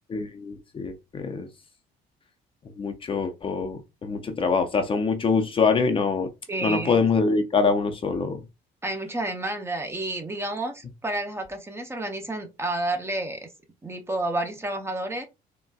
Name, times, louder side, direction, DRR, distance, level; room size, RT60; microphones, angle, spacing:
voice 1, 0.1-1.5 2.8-6.3 6.6-8.4, left 4 dB, 30° left, 0.5 m, -24 dB
voice 2, 6.5-7.0 8.8-13.4 13.8-15.3, right 2 dB, 15° right, 0.6 m, -30 dB
3.9 x 2.2 x 2.2 m
cardioid pair, 110°, 17 cm